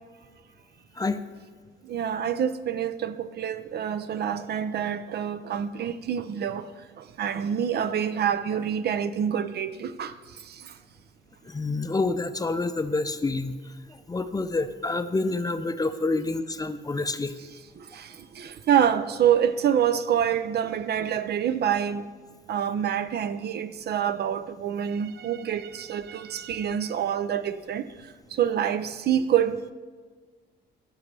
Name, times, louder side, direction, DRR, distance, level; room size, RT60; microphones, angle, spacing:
voice 1, 1.9-6.7 7.0-10.1 16.2-16.3 17.9-18.1 18.4-22.0 22.5-27.9 28.3-29.7, right 9 dB, 55° right, 0.5 m, -26 dB
voice 2, 11.5-13.6 14.1-17.3, left 3 dB, 20° left, 0.5 m, -27 dB
16.0 x 6.1 x 3.3 m
cardioid pair, 90°, 20 cm